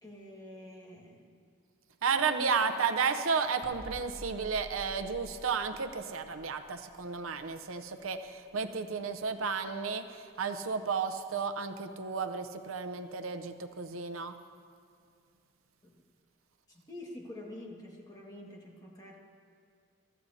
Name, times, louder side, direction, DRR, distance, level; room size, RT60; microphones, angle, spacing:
voice 1, 0.0-1.3 2.4-2.5 15.8-15.9 16.7-19.2, left 1 dB, 20° left, -2 dB, 1.8 m, -47 dB
voice 2, 2.0-14.3, right 5 dB, 85° right, 9 dB, 0.7 m, -33 dB
sound 1, 3.6-9.3 9.6-9.8, equal, 60° left, 2.1 m, -51 dB
24.0 x 14.0 x 2.8 m, 2.4 s
head